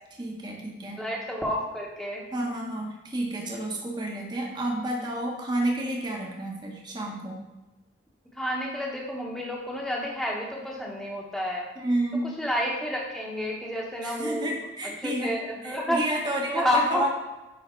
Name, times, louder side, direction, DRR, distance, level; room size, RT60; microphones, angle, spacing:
voice 1, 0.2-1.0 2.3-7.4 11.8-12.3 14.0-17.1, right 1 dB, 25° right, -1 dB, 1.1 m, -30 dB
voice 2, 0.9-2.2 8.3-11.7 12.4-14.5 15.0-16.0 16.5-17.0, equal, ahead, -2 dB, 1.0 m, -29 dB
9.5 x 3.6 x 4.4 m, 1.1 s
head